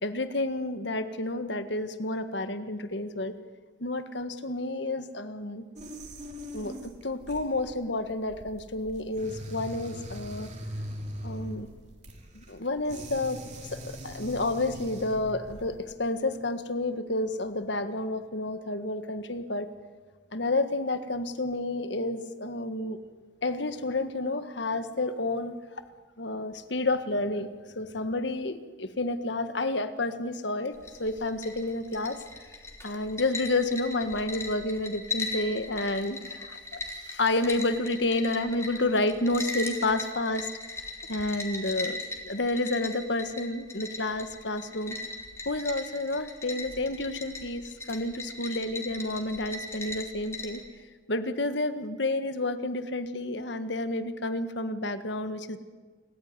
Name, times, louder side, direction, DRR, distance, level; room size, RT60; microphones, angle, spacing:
voice 1, 0.0-3.3 3.8-5.6 6.5-10.5 11.2-11.7 12.3-13.4 13.7-19.7 20.3-23.0 23.4-25.6 26.2-32.5 32.8-40.8 41.1-44.9 45.4-50.6 51.1-55.6, left 2 dB, 65° left, 10 dB, 1.7 m, -30 dB
sound 1, 5.8-15.8, equal, 40° right, 3.7 m, -41 dB
sound 2, 30.7-50.6, left 2 dB, 15° left, 3.6 m, -39 dB
28.0 x 14.5 x 9.8 m, 1.5 s
head